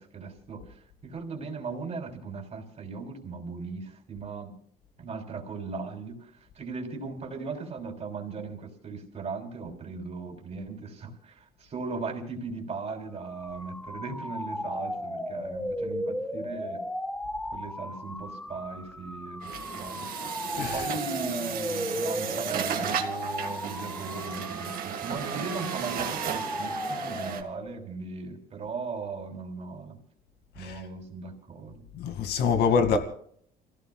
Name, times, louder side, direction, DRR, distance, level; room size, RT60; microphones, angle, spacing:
voice 1, 0.0-4.5 5.0-16.8 17.5-20.1 20.7-30.0 30.5-31.8 32.6-32.8, right 4 dB, 40° right, 3.4 m, -38 dB
sound 1, 13.2-27.9, left 1 dB, 5° left, 0.7 m, -36 dB
Truck, 19.4-27.4, right 8 dB, 60° right, 1.8 m, -34 dB
voice 2, 20.6-20.9 30.6-30.8 31.9-33.0, left 5 dB, 75° left, 2.2 m, -25 dB
30.0 x 16.5 x 2.4 m
cardioid pair, 110°, 17 cm